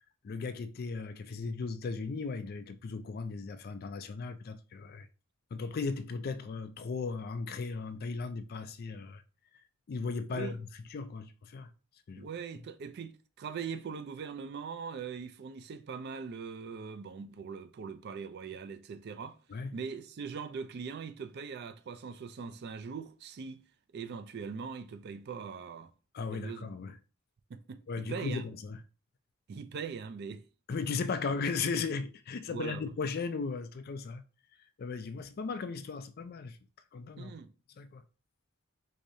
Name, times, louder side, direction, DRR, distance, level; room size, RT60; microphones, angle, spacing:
voice 1, 0.2-5.1 5.5-9.2 9.9-11.7 12.1-12.3 19.5-19.8 26.1-27.0 27.9-28.8 30.7-34.2 34.8-36.6 36.9-37.3 37.8-38.0, left 4 dB, 45° left, 0.3 m, -36 dB
voice 2, 12.1-13.1 13.4-19.4 19.7-23.6 23.9-25.9 26.3-26.7 27.5-28.4 29.5-30.4 32.5-32.8 37.2-37.5, right 6 dB, 50° right, 0.3 m, -41 dB
4.7 x 2.7 x 2.6 m
head